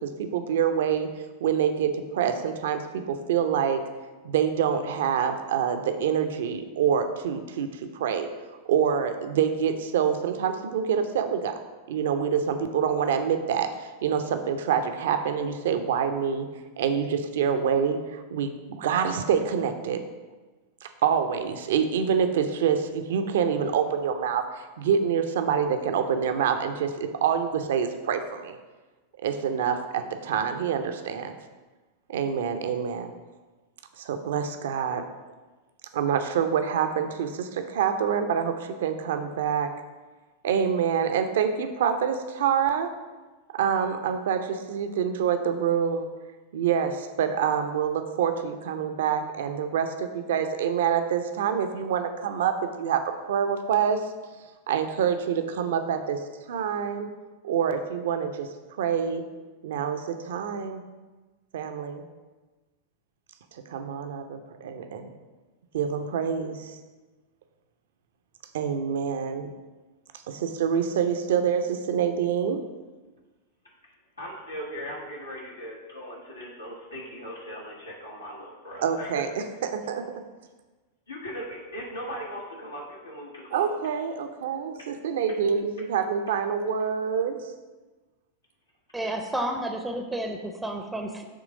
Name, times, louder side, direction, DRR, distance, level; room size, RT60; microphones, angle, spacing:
voice 1, 0.0-3.8 4.2-11.5 11.9-16.5 16.8-20.0 20.8-28.6 29.2-31.4 32.1-33.1 34.0-35.1 35.9-39.7 40.4-42.9 43.5-46.1 46.5-54.1 54.7-57.1 57.4-59.2 59.6-60.8 61.5-62.0 63.5-65.1 65.7-66.8 68.5-69.5 70.3-72.6 78.8-80.3 83.5-87.5, right 7 dB, 60° right, 7 dB, 0.5 m, -26 dB
voice 2, 74.2-79.1 81.1-83.8 85.1-85.2, equal, 80° left, -3 dB, 1.0 m, -39 dB
voice 3, 88.9-91.2, right 1 dB, 5° right, 4 dB, 0.6 m, -31 dB
7.5 x 3.1 x 5.0 m, 1.2 s
figure-of-eight pair, 90°, 0 cm